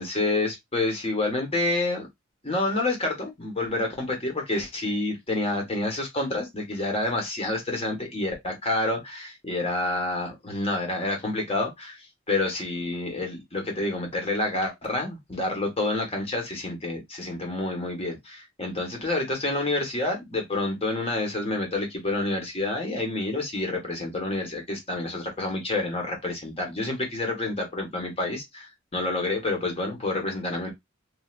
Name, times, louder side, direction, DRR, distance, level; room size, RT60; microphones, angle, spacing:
voice 1, 0.0-2.1 2.4-12.0 12.3-30.7, left 2 dB, 30° left, 1.2 m, -28 dB
3.2 x 2.6 x 2.4 m
head